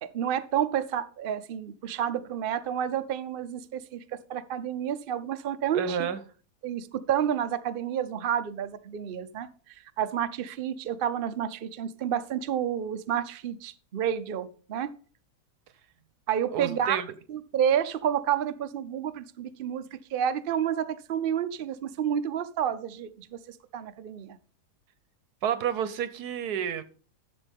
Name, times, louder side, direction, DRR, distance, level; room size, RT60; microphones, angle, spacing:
voice 1, 0.0-6.1 6.6-9.5 10.0-14.9 16.3-17.0 17.3-24.4, right 9 dB, 55° right, 0.6 m, -30 dB
voice 2, 5.7-6.2 16.5-17.1 25.4-26.8, right 8 dB, 80° right, 1.4 m, -30 dB
11.5 x 7.0 x 3.5 m
omnidirectional pair, 1.7 m